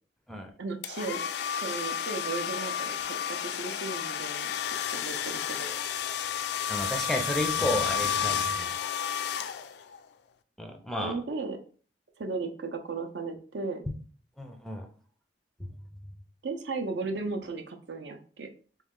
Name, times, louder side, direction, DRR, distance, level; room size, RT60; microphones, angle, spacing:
voice 1, 0.6-1.2 1.6-3.0 3.3-4.5 4.9-5.7 11.0-11.6 12.2-13.8 16.4-18.5, right 3 dB, 70° right, 5 dB, 0.6 m, -35 dB
sound 1, 0.8-10.0, left 8 dB, 65° left, 0.3 m, -31 dB
voice 2, 6.7-8.7 10.6-11.1 14.4-14.9 15.6-15.7, left 1 dB, ahead, 3 dB, 0.4 m, -32 dB
3.6 x 3.1 x 3.7 m, 0.43 s
head